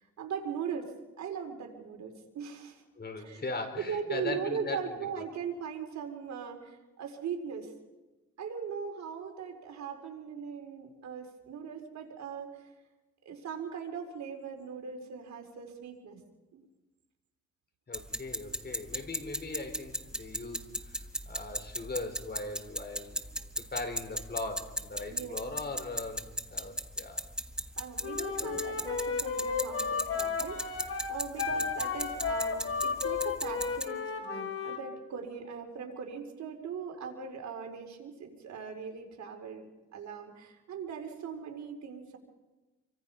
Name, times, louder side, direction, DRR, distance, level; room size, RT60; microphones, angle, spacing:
voice 1, 0.0-2.8 3.2-3.4 3.8-7.7 8.4-12.7 13.2-16.2 16.5-16.6 25.0-25.4 27.7-42.2, right 6 dB, 65° right, 3 dB, 4.4 m, -40 dB
voice 2, 3.0-5.2 17.9-23.2 23.7-26.2 26.5-27.2 28.4-28.6 31.5-31.7, left 3 dB, 35° left, 6 dB, 4.5 m, -39 dB
sound 1, 17.9-33.9, right 1 dB, 5° right, 1.4 m, -38 dB
Wind instrument woodwind instrument, 28.0-34.8, left 5 dB, 50° left, 4.2 m, -33 dB
28.0 x 24.5 x 5.5 m, 1.1 s
cardioid pair, 90°, 30 cm